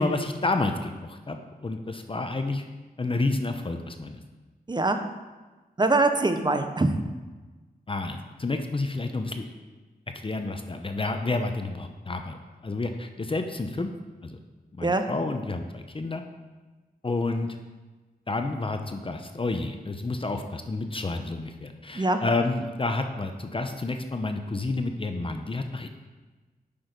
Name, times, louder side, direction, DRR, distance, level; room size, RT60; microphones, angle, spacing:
voice 1, 0.0-1.4 1.6-2.7 3.0-4.2 7.9-9.5 10.1-12.4 12.6-13.9 14.2-14.4 14.7-16.2 17.0-17.5 18.3-25.9, left 2 dB, 35° left, 6 dB, 0.8 m, -29 dB
voice 2, 4.7-5.0 5.8-7.0 14.8-15.0 21.9-22.2, right 2 dB, 25° right, 7 dB, 0.8 m, -23 dB
8.7 x 6.3 x 5.2 m, 1.3 s
wide cardioid pair, 70°, 16 cm